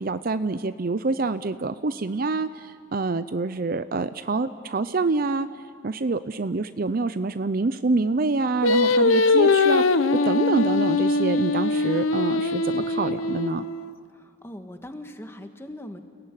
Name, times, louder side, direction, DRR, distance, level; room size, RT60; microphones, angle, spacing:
voice 1, 0.0-5.5 5.8-13.7, right 3 dB, 45° right, 12 dB, 0.6 m, -26 dB
Singing, 8.6-13.9, left 3 dB, 85° left, 0.9 m, -22 dB
voice 2, 14.1-16.0, left 1 dB, 10° left, 6 dB, 1.5 m, -40 dB
30.0 x 18.0 x 9.8 m, 2.2 s
head